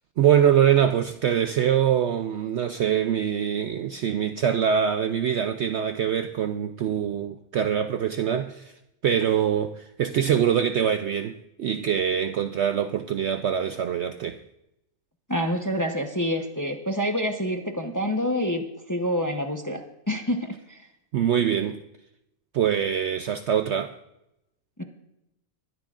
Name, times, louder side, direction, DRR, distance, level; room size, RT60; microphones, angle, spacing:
voice 1, 0.2-8.7 9.0-14.4 21.1-21.8 22.5-23.9, right 9 dB, 65° right, 0.7 m, -24 dB
voice 2, 15.3-19.8 20.1-20.9 24.8-24.9, equal, 15° left, 0.8 m, -27 dB
21.0 x 12.5 x 2.5 m
omnidirectional pair, 1.5 m